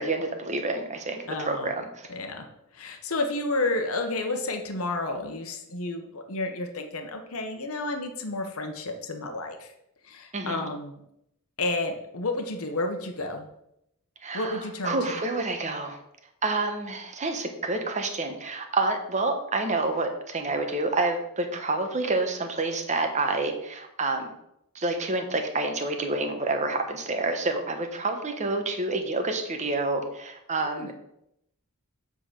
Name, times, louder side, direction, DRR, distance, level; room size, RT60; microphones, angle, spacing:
voice 1, 0.0-1.8 10.3-10.6 14.2-16.0 16.4-24.3 24.7-30.9, right 2 dB, 35° right, 5 dB, 1.0 m, -28 dB
voice 2, 1.3-1.7 2.1-2.5 2.7-9.7 10.0-11.0 11.6-13.5 14.3-15.0 30.6-30.9, left 2 dB, 70° left, 5 dB, 1.0 m, -31 dB
7.6 x 3.9 x 6.3 m, 0.79 s
head